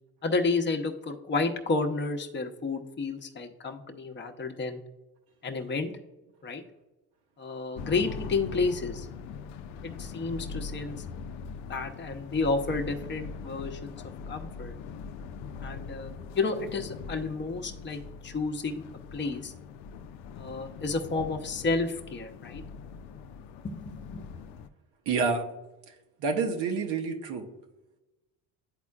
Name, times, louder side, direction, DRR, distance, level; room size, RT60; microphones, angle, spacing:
voice 1, 0.2-4.8 5.4-5.9 6.4-6.6 7.4-9.1 9.8-11.0 11.7-14.0 14.3-14.8 15.6-18.8 19.1-19.5 20.3-22.6 23.6-24.2, left 3 dB, 25° left, 4 dB, 0.9 m, -31 dB
sound 1, 7.7-24.7, left 5 dB, 70° left, 0.6 m, -41 dB
voice 2, 25.1-25.5 26.2-27.5, right 4 dB, 65° right, 4 dB, 1.1 m, -28 dB
11.0 x 4.2 x 2.4 m, 1.0 s
hypercardioid pair, 65°, 45 cm